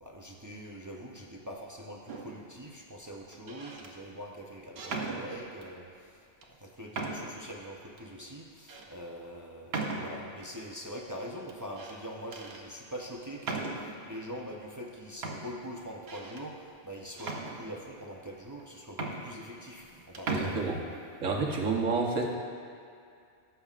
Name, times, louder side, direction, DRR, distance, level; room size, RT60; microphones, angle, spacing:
voice 1, 0.0-20.6, equal, 25° right, -1 dB, 0.4 m, -43 dB
sound 1, 2.1-2.5 3.3-3.9 4.8-5.7 6.4-6.5 6.9-7.5 8.0-8.1 8.7-8.9 9.7-10.4 11.5-12.0 12.3-12.6 13.4-14.1 14.8-14.9 15.2-16.5 17.2-18.0 18.6-18.7 18.9-19.9 20.1-20.5, right 3 dB, 55° right, 1.1 m, -37 dB
voice 2, 20.3-20.8 21.2-22.4, right 3 dB, 90° right, -1 dB, 1.5 m, -29 dB
17.5 x 7.0 x 2.4 m, 2.4 s
omnidirectional pair, 1.3 m